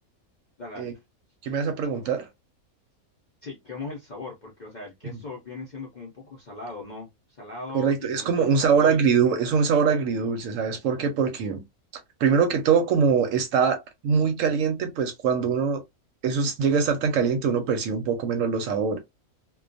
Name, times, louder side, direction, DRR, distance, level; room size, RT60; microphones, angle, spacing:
voice 1, 0.6-0.9 3.4-9.0, left 3 dB, 50° left, 0.5 m, -39 dB
voice 2, 1.4-2.3 5.1-5.2 7.7-11.6 12.2-13.8 14.0-15.8 16.2-19.0, right 6 dB, 70° right, 0.9 m, -23 dB
2.3 x 2.2 x 2.5 m
omnidirectional pair, 1.5 m